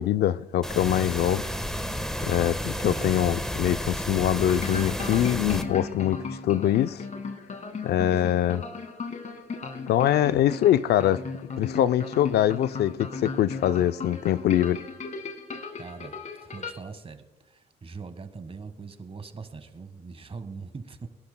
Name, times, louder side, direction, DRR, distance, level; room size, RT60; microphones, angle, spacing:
voice 1, 0.0-1.4 2.2-7.0 7.8-8.6 9.9-11.2 11.6-14.8, left 12 dB, 60° left, 0.4 m, -23 dB
sound 1, 0.6-5.6, equal, 5° left, 1.2 m, -31 dB
voice 2, 2.8-3.3 15.8-21.1, right 4 dB, 30° right, 1.5 m, -41 dB
sound 2, 4.4-16.7, left 4 dB, 40° left, 1.6 m, -36 dB
23.0 x 11.5 x 2.2 m
supercardioid pair, 60°, 19 cm